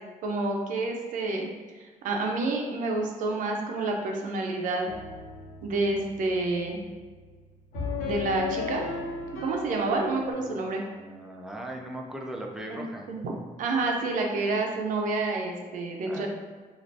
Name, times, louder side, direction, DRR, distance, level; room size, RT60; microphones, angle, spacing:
voice 1, 0.2-1.5 1.8-4.9 5.6-6.8 8.0-8.8 9.4-10.8 12.7-16.3, right 3 dB, 70° right, 1 dB, 0.5 m, -29 dB
sound 1, 4.9-10.3, left 4 dB, 85° left, 0.8 m, -36 dB
voice 2, 10.5-13.1 14.3-14.6 16.0-16.3, right 1 dB, 5° right, 0 dB, 0.3 m, -39 dB
3.2 x 2.4 x 2.6 m, 1.5 s
cardioid pair, 155°, 14 cm